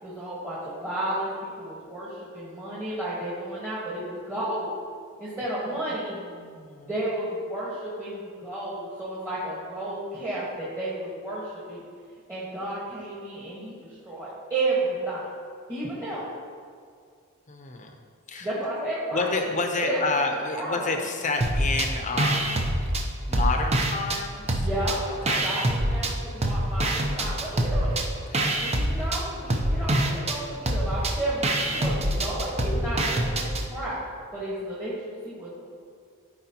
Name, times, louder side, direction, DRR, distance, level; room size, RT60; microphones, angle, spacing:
voice 1, 0.0-4.8 5.2-6.2 6.9-11.8 12.3-15.3 15.7-16.2 18.4-19.6 19.8-20.9 24.5-28.0 28.6-34.0 34.3-34.9 35.2-35.7, right 1 dB, 10° right, -9 dB, 1.4 m, -32 dB
voice 2, 6.1-6.9 17.5-17.9 18.3-18.5 19.1-22.8 23.3-24.7 25.1-25.5 28.3-28.6, left 3 dB, 35° left, 4 dB, 0.7 m, -30 dB
sound 1, 21.4-21.9 22.2-24.2 24.5-26.1 26.4-33.7, right 1 dB, 30° right, 0.6 m, -25 dB
13.0 x 4.8 x 2.9 m, 2.2 s
head